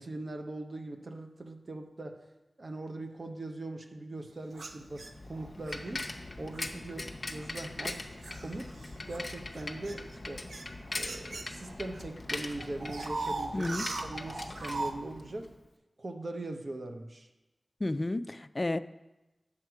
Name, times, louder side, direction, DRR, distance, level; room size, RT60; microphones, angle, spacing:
voice 1, 0.0-2.3 2.6-6.1 6.4-8.1 8.4-8.8 9.1-10.5 11.0-13.7 14.0-15.5 16.0-17.3, right 2 dB, 55° right, 5 dB, 0.8 m, -41 dB
sound 1, 4.5-5.8 6.5-6.8 7.4-12.0 12.3-14.9, right 3 dB, 80° right, 0.6 m, -39 dB
Bicycle, 4.7-15.6, left 2 dB, 50° left, 0.8 m, -41 dB
voice 2, 13.5-13.9 17.8-18.8, left 2 dB, 35° left, 13 dB, 0.3 m, -31 dB
7.9 x 7.2 x 4.7 m, 1.0 s
wide cardioid pair, 65°, 0 cm